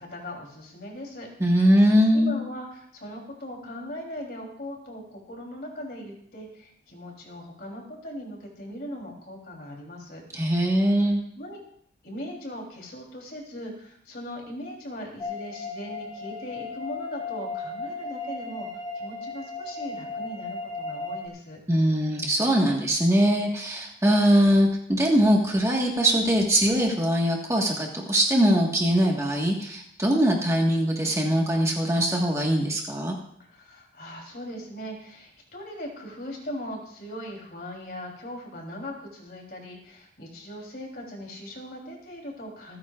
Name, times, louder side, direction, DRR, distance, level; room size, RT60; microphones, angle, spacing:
voice 1, 0.0-1.3 2.1-10.2 11.4-11.6 12.0-21.6 33.4-42.8, equal, 55° left, 0 dB, 3.5 m, -39 dB
voice 2, 1.4-2.3 10.3-11.2 21.7-33.1, equal, 15° right, -1 dB, 1.6 m, -22 dB
sound 1, 15.2-21.3, left 3 dB, 25° left, 2.3 m, -35 dB
27.0 x 9.5 x 2.5 m, 0.69 s
head